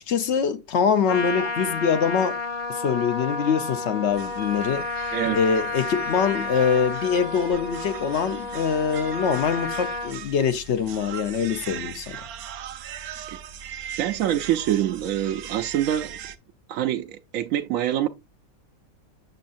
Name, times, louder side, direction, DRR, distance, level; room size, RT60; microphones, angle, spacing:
voice 1, 0.0-2.4 2.7-12.2, left 6 dB, 60° left, 0.9 m, -24 dB
Trumpet, 1.1-10.1, left 3 dB, 30° left, 0.9 m, -31 dB
sound 1, 4.1-16.4, right 9 dB, 90° right, 1.2 m, -40 dB
voice 2, 14.0-16.2 16.7-18.1, right 11 dB, 70° right, 0.9 m, -25 dB
7.8 x 6.3 x 2.5 m
omnidirectional pair, 1.5 m